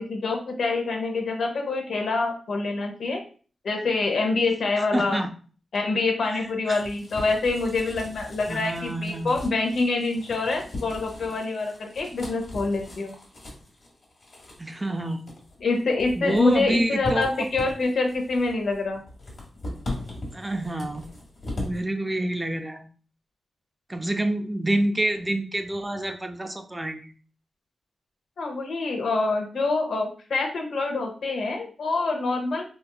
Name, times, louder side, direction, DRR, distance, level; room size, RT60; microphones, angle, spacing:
voice 1, 0.0-3.2 3.6-5.3 5.7-13.2 15.6-19.0 28.4-32.6, left 3 dB, 75° left, 2 dB, 0.8 m, -26 dB
voice 2, 4.8-5.3 6.3-6.8 8.5-9.4 14.6-15.2 16.2-17.5 20.3-21.1 21.5-22.9 23.9-27.1, right 1 dB, 15° right, 6 dB, 0.4 m, -28 dB
sound 1, 6.4-21.8, left 2 dB, 60° left, 1.4 m, -39 dB
4.2 x 2.5 x 2.3 m, 0.40 s
wide cardioid pair, 100°, 0 cm